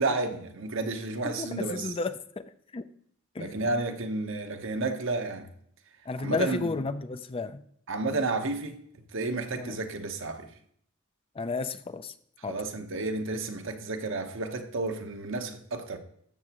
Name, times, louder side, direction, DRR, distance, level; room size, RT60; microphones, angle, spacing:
voice 1, 0.0-1.9 3.4-5.5 6.2-6.7 7.9-8.8 9.1-10.5 12.5-16.0, right 3 dB, 65° right, 1.0 m, -31 dB
voice 2, 1.2-2.4 2.7-2.8 3.4-3.6 6.1-7.6 9.6-9.7 11.4-12.1 12.4-12.5, left 3 dB, 25° left, 0.4 m, -32 dB
12.5 x 7.1 x 3.0 m
head